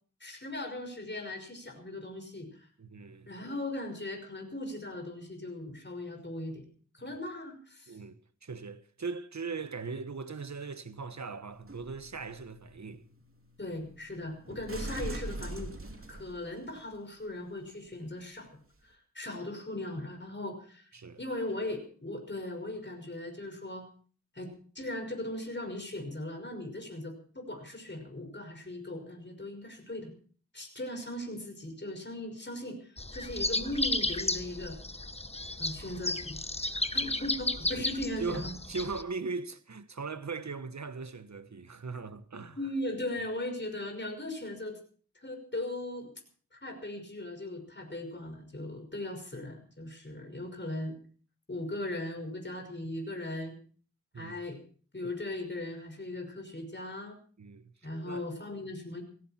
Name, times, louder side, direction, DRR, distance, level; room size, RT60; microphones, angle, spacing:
voice 1, 0.2-2.7 3.3-6.6 6.9-8.0 13.6-15.7 16.1-18.5 18.8-20.9 21.2-23.9 24.3-30.1 30.5-34.8 35.6-36.4 36.7-38.5 42.6-44.8 45.2-46.1 46.6-51.0 51.5-53.6 54.1-54.6 54.9-57.2 57.8-59.0, left 1 dB, 35° left, 5.8 m, -38 dB
voice 2, 2.8-3.3 7.9-13.0 20.9-21.2 36.9-37.1 37.7-37.9 38.2-42.6 54.1-54.4 57.4-57.7 58.0-58.3, right 4 dB, 65° right, 1.3 m, -39 dB
sound 1, 11.5-16.9 17.7-17.8, right 1 dB, 45° right, 3.0 m, -43 dB
sound 2, 33.0-39.0, left 2 dB, 20° left, 1.2 m, -33 dB
18.0 x 17.0 x 4.5 m
cardioid pair, 40°, 30 cm